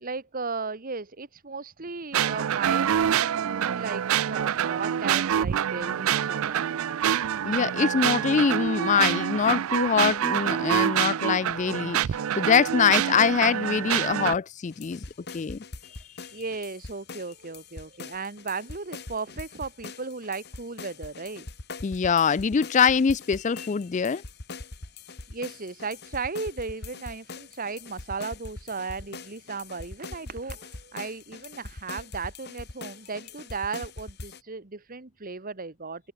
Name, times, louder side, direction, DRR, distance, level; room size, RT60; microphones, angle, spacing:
voice 1, 0.0-6.8 16.3-21.5 25.3-36.1, right 4 dB, 40° right, 1.4 m, -36 dB
sound 1, 2.1-14.4, right 9 dB, 70° right, 0.4 m, -26 dB
voice 2, 7.4-15.0 15.3-15.6 21.8-24.2, left 6 dB, 35° left, 0.4 m, -24 dB
sound 2, 14.7-34.4, left 3 dB, 50° left, 1.9 m, -42 dB
head